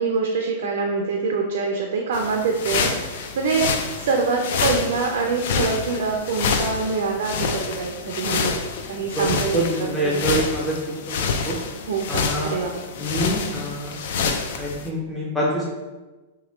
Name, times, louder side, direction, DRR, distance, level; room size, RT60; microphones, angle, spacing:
voice 1, 0.0-3.7 4.0-8.5 8.9-10.2 11.9-12.7, right 4 dB, 75° right, 1 dB, 0.4 m, -25 dB
sound 1, 2.1-14.9, left 5 dB, 65° left, 0.3 m, -27 dB
voice 2, 9.1-11.6 12.1-12.5 13.0-14.0 14.6-15.6, right 1 dB, 5° left, -6 dB, 0.5 m, -26 dB
2.9 x 2.2 x 3.1 m, 1.2 s
hypercardioid pair, 130°, 0 cm